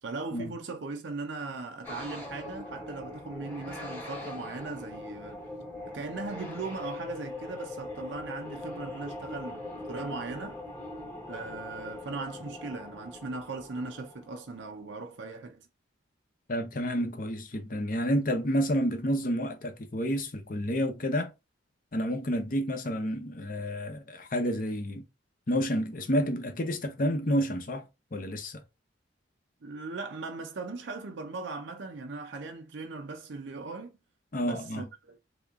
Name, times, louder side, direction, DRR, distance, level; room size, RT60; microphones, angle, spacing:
voice 1, 0.0-5.4 5.8-10.6 11.3-15.7 29.6-33.9 34.4-35.2, right 3 dB, 65° right, 0.5 m, -39 dB
sound 1, 1.8-14.8, left 2 dB, 10° left, 1.0 m, -41 dB
voice 2, 16.5-21.3 21.9-25.0 25.5-27.8 28.1-28.6 34.3-34.8, equal, 45° left, 0.7 m, -29 dB
3.4 x 2.9 x 3.6 m
head